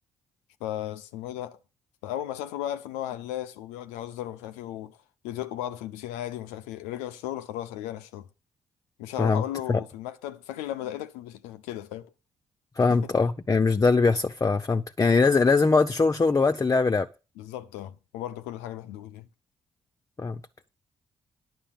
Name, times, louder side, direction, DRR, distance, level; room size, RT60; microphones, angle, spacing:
voice 1, 0.6-1.6 2.0-5.0 5.2-8.3 9.0-12.1 12.9-13.0 17.4-19.3, left 12 dB, 85° left, 0.7 m, -35 dB
voice 2, 12.8-17.1 20.2-20.4, left 4 dB, 30° left, 0.8 m, -22 dB
10.0 x 6.2 x 7.3 m
hypercardioid pair, 50°, 12 cm